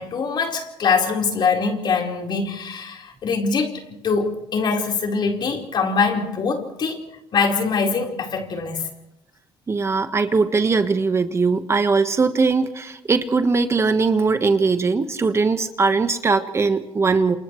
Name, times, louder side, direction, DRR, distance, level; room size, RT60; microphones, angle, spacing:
voice 1, 0.0-3.7 4.0-7.0 7.3-8.9, left 5 dB, 55° left, 1 dB, 4.4 m, -23 dB
voice 2, 9.7-17.4, right 4 dB, 30° right, 8 dB, 1.4 m, -20 dB
29.0 x 28.0 x 3.2 m, 0.87 s
cardioid pair, 105°, 9 cm